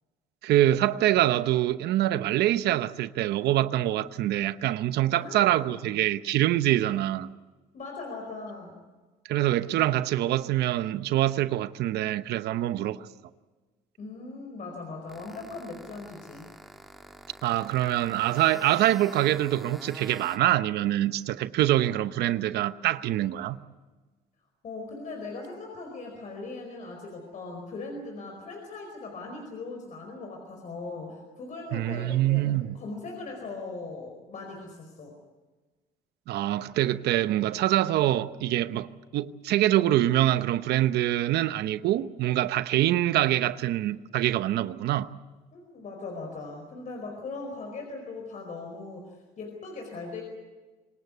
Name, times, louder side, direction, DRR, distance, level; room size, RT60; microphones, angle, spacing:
voice 1, 0.4-7.3 9.3-13.0 17.4-23.6 31.7-32.8 36.3-45.1, right 14 dB, 75° right, 0.9 m, -25 dB
voice 2, 5.2-5.9 7.7-8.7 14.0-16.5 24.6-35.1 45.5-50.2, left 3 dB, 50° left, 4.8 m, -39 dB
sound 1, 15.1-20.4, equal, ahead, 2.1 m, -46 dB
25.5 x 19.0 x 8.3 m
cardioid pair, 110°, 17 cm